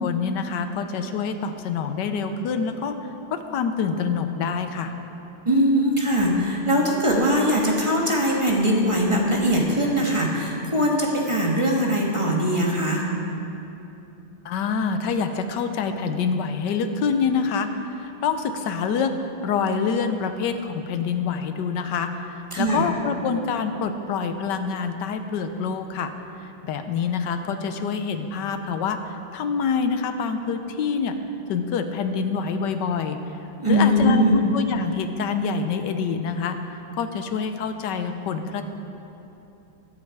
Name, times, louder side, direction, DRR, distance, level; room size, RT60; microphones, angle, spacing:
voice 1, 0.0-3.0 3.3-4.9 14.4-26.1 26.4-31.2 31.5-33.2 33.7-38.6, left 5 dB, 65° left, 7 dB, 1.2 m, -26 dB
voice 2, 5.4-13.0 22.5-22.8 33.6-34.4, equal, 15° right, -2 dB, 1.2 m, -21 dB
20.5 x 7.4 x 4.8 m, 2.9 s
omnidirectional pair, 2.3 m